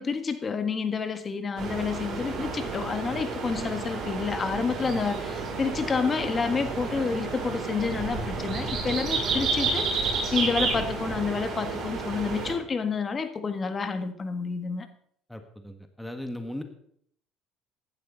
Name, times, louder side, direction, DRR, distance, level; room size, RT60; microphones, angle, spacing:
voice 1, 0.0-14.9, left 5 dB, 30° left, 9 dB, 1.6 m, -29 dB
sound 1, 1.6-12.5, right 4 dB, 55° right, 6.1 m, -31 dB
voice 2, 15.3-16.6, left 1 dB, 5° left, 6 dB, 1.7 m, -37 dB
15.5 x 11.5 x 4.1 m, 0.66 s
supercardioid pair, 80°, 0 cm